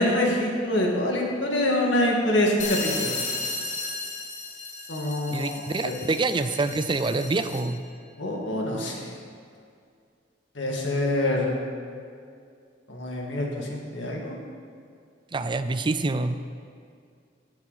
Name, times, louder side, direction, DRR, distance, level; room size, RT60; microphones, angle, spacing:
voice 1, 0.0-3.1 4.9-5.9 8.2-9.1 10.6-11.6 12.9-14.4, left 1 dB, 80° left, -1 dB, 2.0 m, -25 dB
sound 1, 2.6-7.8, left 3 dB, 40° left, 1.3 m, -34 dB
voice 2, 5.3-7.8 15.3-16.4, right 3 dB, 25° right, 11 dB, 0.4 m, -26 dB
16.5 x 7.2 x 4.1 m, 2.3 s
head